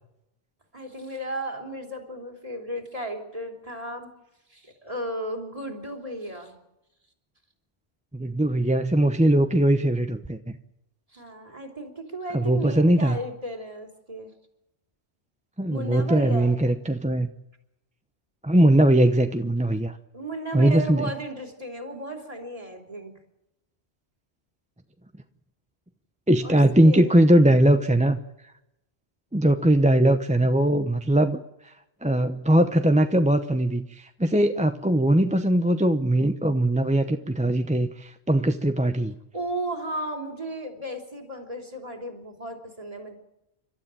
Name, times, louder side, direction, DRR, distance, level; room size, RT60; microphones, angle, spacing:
voice 1, 0.7-4.1 4.5-6.6 11.1-14.3 15.7-16.6 20.1-23.1 26.4-27.4 39.3-43.2, right 1 dB, 35° right, 3 dB, 3.3 m, -35 dB
voice 2, 8.1-10.6 12.3-13.2 15.6-17.3 18.4-20.0 20.5-21.1 26.3-28.2 29.3-31.7 32.0-39.1, right 1 dB, 10° right, 7 dB, 0.7 m, -20 dB
29.5 x 13.0 x 8.9 m, 0.90 s
omnidirectional pair, 1.1 m